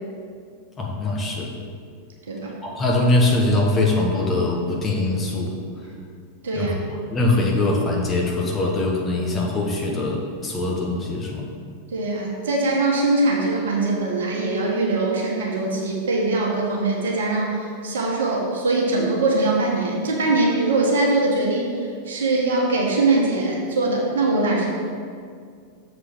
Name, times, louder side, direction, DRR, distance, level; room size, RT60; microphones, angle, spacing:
voice 1, 0.8-1.5 2.6-5.5 6.5-6.8 7.1-11.4, left 2 dB, 20° left, -1 dB, 1.3 m, -22 dB
voice 2, 6.4-6.7 11.9-24.7, right 2 dB, 60° right, -2 dB, 1.6 m, -22 dB
7.3 x 4.3 x 6.3 m, 2.2 s
figure-of-eight pair, 90°, 0 cm